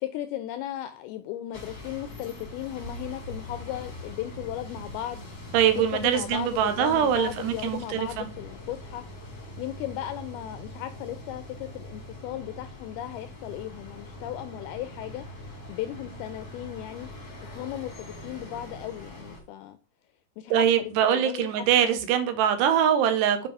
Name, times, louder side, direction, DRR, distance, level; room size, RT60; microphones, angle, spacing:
voice 1, 0.0-5.3 5.8-17.1 17.5-19.8 20.4-22.0, left 13 dB, 85° left, 2.2 m, -36 dB
sound 1, 1.5-19.4, left 1 dB, 45° left, 1.1 m, -42 dB
voice 2, 5.5-8.3 20.5-23.5, right 9 dB, 80° right, 3.0 m, -23 dB
7.4 x 5.2 x 3.4 m
omnidirectional pair, 4.9 m